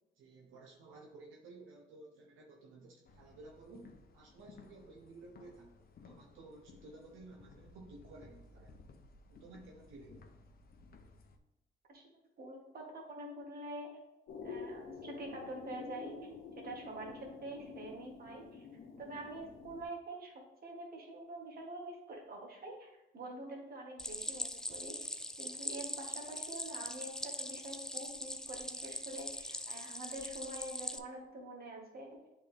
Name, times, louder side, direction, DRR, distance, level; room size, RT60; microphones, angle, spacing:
voice 1, 0.1-8.8 9.3-10.3, right 2 dB, 85° right, 0 dB, 0.9 m, -55 dB
sound 1, 3.0-11.4, left 3 dB, 50° left, 0.7 m, -59 dB
voice 2, 12.4-14.0 14.4-16.3 16.6-18.7 19.0-32.2, right 1 dB, 50° right, 0 dB, 1.8 m, -46 dB
sound 2, 14.3-19.8, left 5 dB, 80° left, 1.1 m, -48 dB
Stream, 24.0-31.0, left 1 dB, 5° left, 0.4 m, -42 dB
8.1 x 3.7 x 3.5 m, 0.98 s
cardioid pair, 90°, 20 cm